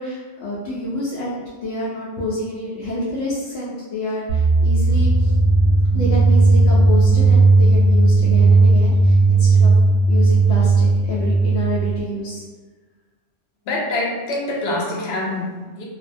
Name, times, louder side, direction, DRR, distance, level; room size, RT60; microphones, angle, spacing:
voice 1, 0.0-5.3 5.9-9.8 10.1-12.4, left 1 dB, 85° left, -7 dB, 1.0 m, -28 dB
sound 1, 4.3-12.0, right 3 dB, 85° right, 0.9 m, -15 dB
voice 2, 13.7-15.8, left 2 dB, 60° left, -3 dB, 0.8 m, -25 dB
2.6 x 2.1 x 2.5 m, 1.3 s
omnidirectional pair, 1.3 m